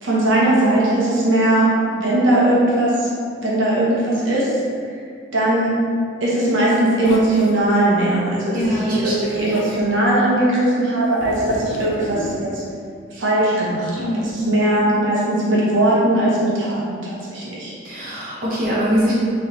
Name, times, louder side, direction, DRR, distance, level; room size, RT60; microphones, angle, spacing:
voice 1, 0.0-3.1 3.4-4.6 5.3-5.7 6.2-8.6 8.8-12.6 13.1-17.8, right 1 dB, 85° right, -6 dB, 1.0 m, -19 dB
Zipper (clothing), 7.1-7.5 8.7-9.8 11.2-12.4, left 2 dB, 90° left, 0.5 m, -33 dB
voice 2, 8.5-9.8 14.0-14.5 17.8-19.1, equal, 45° right, -8 dB, 0.8 m, -23 dB
3.6 x 3.1 x 3.8 m, 2.3 s
head